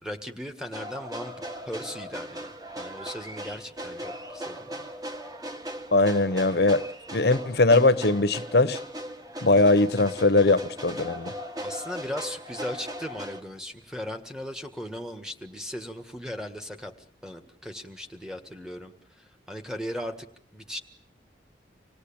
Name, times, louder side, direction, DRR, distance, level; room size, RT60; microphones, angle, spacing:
voice 1, 0.0-2.5 2.8-4.9 11.6-16.9 17.2-20.3 20.5-20.8, equal, 5° right, 6 dB, 1.7 m, -37 dB
sound 1, 0.7-13.4, equal, 20° right, 1.8 m, -38 dB
voice 2, 5.9-6.8 7.1-8.8 9.4-11.3, left 2 dB, 65° left, 13 dB, 1.0 m, -21 dB
26.5 x 18.0 x 8.8 m, 0.67 s
head